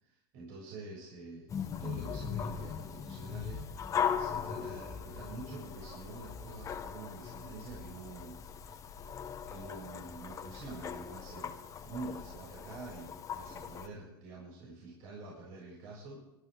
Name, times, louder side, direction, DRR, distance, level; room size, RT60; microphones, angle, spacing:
voice 1, 0.0-8.4 8.7-8.8 9.5-16.2, right 3 dB, 60° right, -5 dB, 7.4 m, -47 dB
sound 1, 1.5-13.9, left 7 dB, 25° left, 1.1 m, -39 dB
25.5 x 13.0 x 3.8 m, 0.93 s
hypercardioid pair, 115°, 12 cm